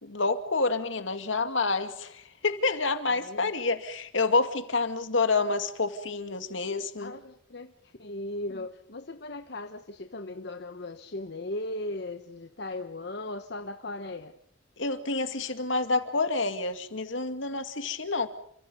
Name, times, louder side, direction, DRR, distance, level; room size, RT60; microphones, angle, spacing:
voice 1, 0.0-7.1 14.8-18.3, left 3 dB, 75° left, 8 dB, 2.4 m, -28 dB
voice 2, 3.1-3.5 7.0-7.7 8.0-14.3, left 2 dB, 55° left, 7 dB, 1.2 m, -37 dB
30.0 x 26.0 x 5.5 m, 0.65 s
head